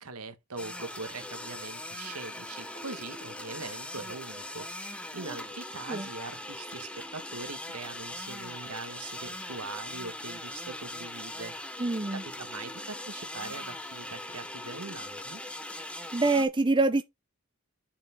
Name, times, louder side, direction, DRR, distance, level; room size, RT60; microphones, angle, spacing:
voice 1, 0.0-15.4, right 3 dB, 85° right, 1.4 m, -42 dB
sound 1, 0.6-16.5, left 1 dB, 5° left, 0.9 m, -40 dB
voice 2, 11.8-12.2 16.1-17.0, right 3 dB, 20° right, 0.6 m, -25 dB
7.0 x 5.8 x 3.6 m
head